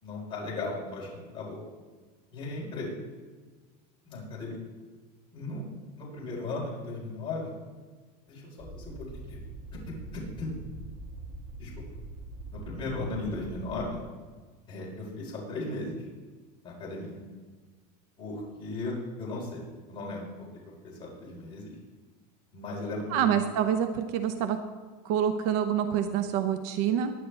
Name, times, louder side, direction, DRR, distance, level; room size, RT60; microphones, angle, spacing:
voice 1, 0.0-1.6 2.3-2.9 4.0-4.6 5.3-5.7 6.0-7.5 8.3-9.4 10.1-10.5 11.6-11.7 12.5-14.0 14.7-16.1 16.6-17.1 18.2-19.6 19.9-20.3 20.8-21.8 22.5-23.4, left 2 dB, 25° left, -5 dB, 4.3 m, -36 dB
sound 1, 8.6-13.9, right 2 dB, 15° right, 1.5 m, -43 dB
voice 2, 23.1-24.6 25.0-27.1, right 9 dB, 55° right, 8 dB, 0.9 m, -27 dB
21.5 x 9.6 x 3.4 m, 1.4 s
supercardioid pair, 165°, 20 cm